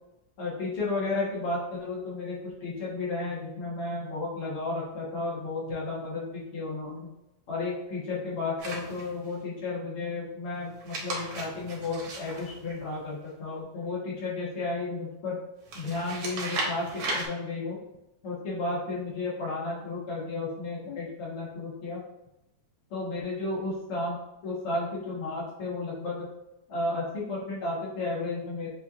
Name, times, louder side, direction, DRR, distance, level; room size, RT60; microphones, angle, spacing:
voice 1, 0.4-7.1 7.5-15.4 15.7-17.8 18.2-22.0 22.9-24.2 24.4-26.3 26.7-28.7, left 3 dB, 85° left, -6 dB, 2.4 m, -33 dB
sound 1, 8.6-9.3 10.7-13.3 15.7-17.3, right 2 dB, 70° right, 1.7 m, -36 dB
6.7 x 2.8 x 2.6 m, 0.92 s
omnidirectional pair, 2.4 m